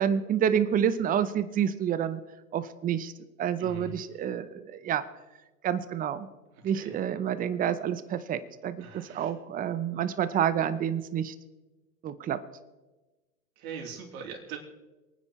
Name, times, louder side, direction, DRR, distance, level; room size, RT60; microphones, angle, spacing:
voice 1, 0.0-2.2 2.5-3.1 3.4-5.0 5.6-6.3 6.6-11.3 12.0-12.4, right 9 dB, 20° right, 13 dB, 0.7 m, -28 dB
voice 2, 3.6-3.9 6.8-6.9 8.8-9.3 13.6-14.6, right 5 dB, 60° right, 0 dB, 3.5 m, -40 dB
27.5 x 9.6 x 3.2 m, 1.1 s
hypercardioid pair, 110°, 48 cm